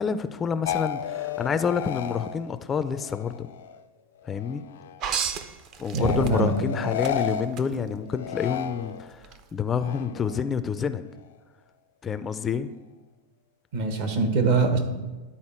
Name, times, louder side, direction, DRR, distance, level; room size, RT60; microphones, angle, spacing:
voice 1, 0.0-3.5 4.2-4.6 5.8-11.0 12.0-12.7, left 6 dB, 20° left, 11 dB, 0.3 m, -28 dB
sound 1, 0.6-3.9 4.2-5.0 6.0-9.2 9.7-10.5, left 9 dB, 90° left, 0.4 m, -33 dB
sound 2, 5.0-6.6 7.0-7.7 9.2-9.4, right 6 dB, 45° right, 0.6 m, -30 dB
voice 2, 5.9-6.5 6.8-6.9 13.7-14.8, right 4 dB, 65° right, 6 dB, 1.3 m, -23 dB
11.5 x 4.3 x 4.3 m, 1.2 s
supercardioid pair, 135°, 0 cm